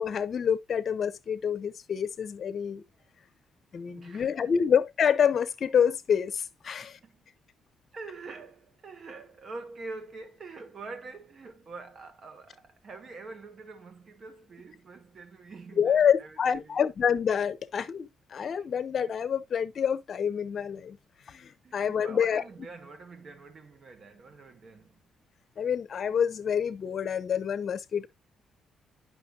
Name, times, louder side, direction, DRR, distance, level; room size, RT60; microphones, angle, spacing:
voice 1, 0.0-2.8 3.7-7.0 15.8-21.0 21.3-22.4 25.6-28.1, left 7 dB, 50° left, 0.8 m, -27 dB
voice 2, 3.9-4.5 6.7-7.3 7.9-16.9 21.6-25.0, right 3 dB, 50° right, 1.7 m, -45 dB
9.5 x 6.0 x 2.4 m
cardioid pair, 90°, 0 cm